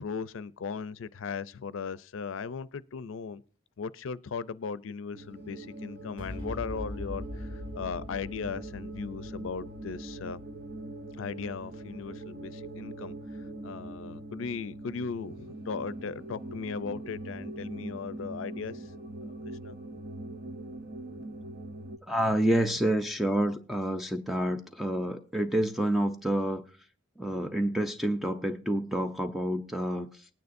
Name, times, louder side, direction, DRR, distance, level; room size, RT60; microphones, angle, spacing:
voice 1, 0.0-3.4 3.8-7.5 7.8-10.4 11.2-13.1 13.6-18.8 19.6-19.7, left 5 dB, 80° left, 0.5 m, -37 dB
sound 1, 5.1-22.0, right 1 dB, 50° right, 0.8 m, -42 dB
sound 2, 6.2-12.9, left 1 dB, 30° right, 5.0 m, -43 dB
voice 2, 22.1-26.6 27.2-30.3, right 1 dB, ahead, 0.5 m, -28 dB
19.0 x 9.4 x 2.6 m
head